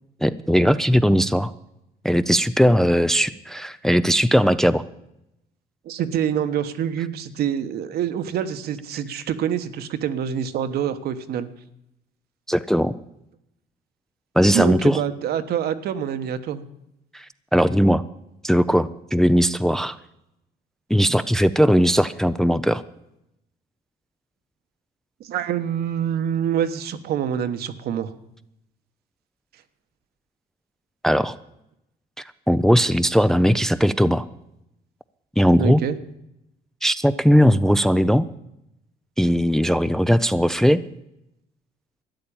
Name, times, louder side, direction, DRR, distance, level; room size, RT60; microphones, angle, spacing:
voice 1, 0.2-1.5 2.0-4.8 12.5-13.0 14.4-15.0 17.1-17.3 17.5-18.0 18.4-20.0 20.9-22.8 31.0-31.3 32.5-34.2 35.4-35.8 36.8-38.3 39.2-40.8, equal, 5° left, 12 dB, 0.5 m, -18 dB
voice 2, 5.8-11.5 14.5-16.6 25.2-28.1 35.6-36.0, right 9 dB, 65° right, 10 dB, 1.2 m, -26 dB
13.0 x 9.8 x 8.7 m, 0.82 s
cardioid pair, 110°, 17 cm